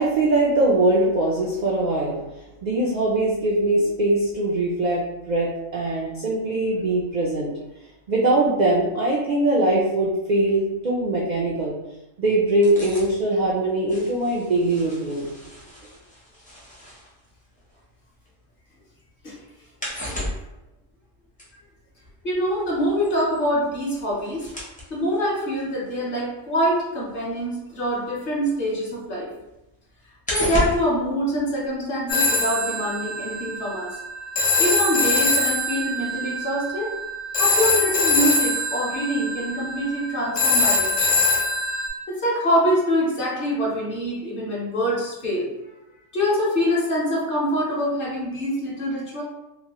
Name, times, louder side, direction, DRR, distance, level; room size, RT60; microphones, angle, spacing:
voice 1, 0.0-2.2 2.6-5.0 5.3-7.5 8.1-11.8 12.2-15.3, right 2 dB, 75° right, -4 dB, 0.4 m, -21 dB
sound 1, 12.6-18.6 18.9-28.6 28.9-32.0 32.3-32.4, equal, 10° left, 0.4 m, -35 dB
voice 2, 22.2-24.4 24.9-29.3 30.3-34.0 34.6-36.9 37.4-41.2 42.1-45.5 46.1-49.2, equal, 50° left, -4 dB, 0.8 m, -25 dB
Telephone, 32.1-41.9, left 2 dB, 85° left, 1.0 m, -23 dB
3.0 x 2.1 x 2.8 m, 0.94 s
omnidirectional pair, 1.3 m